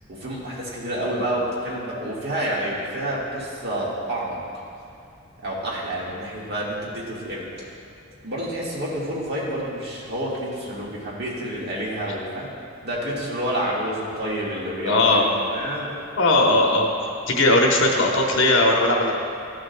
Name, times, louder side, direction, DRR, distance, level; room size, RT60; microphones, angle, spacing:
voice 1, 0.1-4.4 5.4-7.5 8.2-12.5 12.8-15.9, right 1 dB, 55° right, -5 dB, 1.7 m, -28 dB
voice 2, 14.8-15.2 16.2-16.9 17.3-19.1, left 2 dB, 70° left, 0 dB, 1.0 m, -18 dB
12.5 x 6.5 x 2.2 m, 2.6 s
head